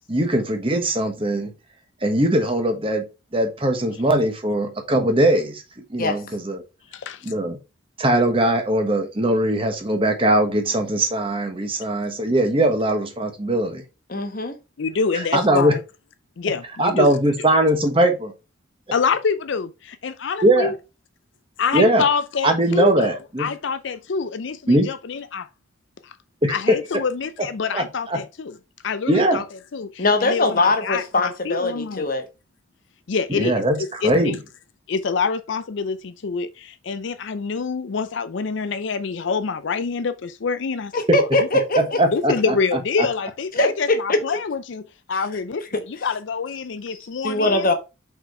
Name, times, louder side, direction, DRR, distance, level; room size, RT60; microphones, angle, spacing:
voice 1, 0.1-1.5 2.0-3.1 3.3-5.6 5.9-6.6 7.2-7.6 8.0-13.8 15.3-15.8 16.8-18.3 20.4-20.7 21.7-22.1 22.4-23.5 24.7-24.9 26.4-26.8 27.7-28.2 29.1-29.4 33.3-34.3 41.1-41.2 41.8-42.5, right 1 dB, 25° right, 1.1 m, -20 dB
voice 2, 6.9-7.3 14.8-15.8 16.4-17.2 18.9-19.7 20.0-20.7 21.6-25.5 26.0-26.2 26.5-28.6 28.8-29.4 29.7-32.1 33.1-34.4 34.9-40.9 41.4-41.5 42.1-47.7, left 5 dB, 60° left, 0.4 m, -26 dB
voice 3, 14.1-14.6 30.0-32.2 40.9-42.0 43.5-44.2 47.2-47.7, left 2 dB, 40° left, 1.1 m, -21 dB
5.5 x 4.4 x 4.4 m
head